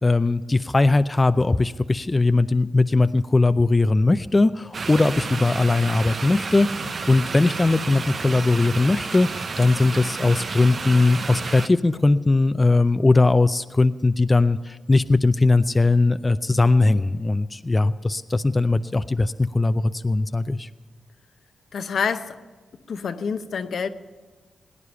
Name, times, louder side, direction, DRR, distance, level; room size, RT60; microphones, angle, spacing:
voice 1, 0.0-20.7, left 3 dB, 30° left, 11 dB, 0.5 m, -20 dB
sound 1, 4.7-11.7, right 4 dB, 60° right, 0.8 m, -31 dB
voice 2, 21.7-22.4 22.9-23.9, left 6 dB, 70° left, 9 dB, 0.7 m, -27 dB
18.5 x 9.8 x 6.9 m, 1.4 s
supercardioid pair, 45°, 0 cm